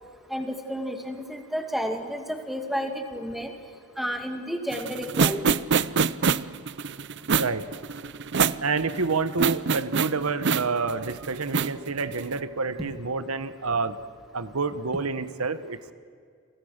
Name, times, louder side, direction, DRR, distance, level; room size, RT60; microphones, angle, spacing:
voice 1, 0.3-3.5 4.0-5.6, equal, ahead, 4 dB, 2.4 m, -31 dB
sound 1, 4.7-12.3, right 5 dB, 55° right, 0.6 m, -25 dB
voice 2, 7.3-7.7 8.6-14.0 14.3-15.9, right 4 dB, 85° right, 13 dB, 1.1 m, -28 dB
29.5 x 24.0 x 6.6 m, 2.1 s
head